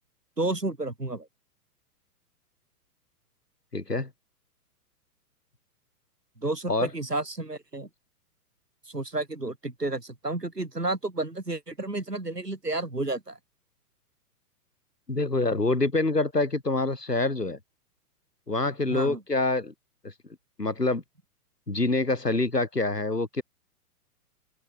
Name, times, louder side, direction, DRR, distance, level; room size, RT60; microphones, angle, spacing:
voice 1, 0.4-1.3 6.4-7.9 8.9-13.4 18.9-19.2, right 2 dB, 90° right, 6.0 m, -31 dB
voice 2, 3.7-4.1 6.7-6.9 15.1-17.6 18.5-19.7 20.0-20.1 20.6-21.0 21.7-23.4, left 2 dB, 90° left, 5.5 m, -26 dB
open air
figure-of-eight pair, 115°, 46 cm